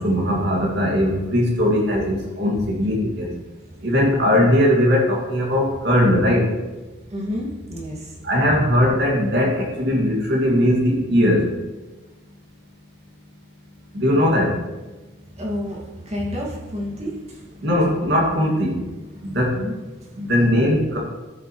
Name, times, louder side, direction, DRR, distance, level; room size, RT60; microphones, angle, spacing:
voice 1, 0.0-3.3 3.8-6.5 8.2-11.5 13.9-14.6 17.6-18.8 19.2-19.5 20.1-21.0, left 1 dB, 55° right, -2 dB, 2.3 m, -19 dB
voice 2, 7.1-8.1 15.4-17.4 19.5-19.7, equal, 30° right, -4 dB, 2.2 m, -30 dB
13.0 x 7.4 x 3.2 m, 1.2 s
head